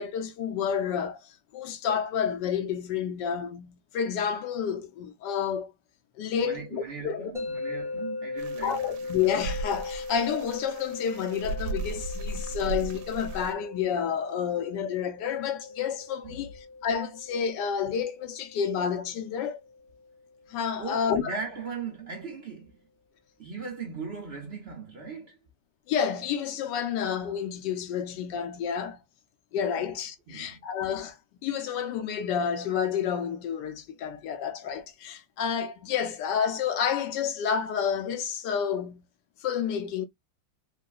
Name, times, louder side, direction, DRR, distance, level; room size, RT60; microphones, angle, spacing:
voice 1, 0.0-5.7 6.2-7.3 8.6-16.5 16.8-19.6 20.5-21.4 25.9-29.0 29.5-31.2 31.4-39.0 39.4-40.1, left 7 dB, 80° left, 1.2 m, -30 dB
voice 2, 6.3-9.1 12.4-12.7 16.2-16.5 20.8-22.8 23.4-25.5 29.7-29.9 30.3-30.6, right 5 dB, 50° right, 0.8 m, -39 dB
sound 1, 7.3-20.4, left 3 dB, 5° right, 0.6 m, -39 dB
sound 2, 8.4-13.5, right 3 dB, 75° right, 1.1 m, -37 dB
3.9 x 2.1 x 2.5 m
omnidirectional pair, 1.9 m